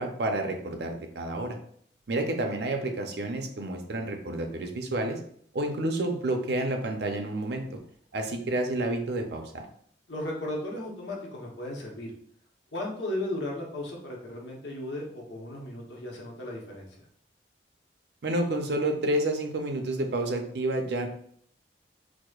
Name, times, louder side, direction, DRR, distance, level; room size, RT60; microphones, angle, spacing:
voice 1, 0.0-1.6 2.1-5.2 5.5-7.8 8.1-9.7 18.2-21.1, right 1 dB, 70° right, 4 dB, 0.5 m, -29 dB
voice 2, 10.1-12.1 12.7-16.9, left 1 dB, 85° left, -1 dB, 0.9 m, -35 dB
4.7 x 2.0 x 2.4 m, 0.63 s
head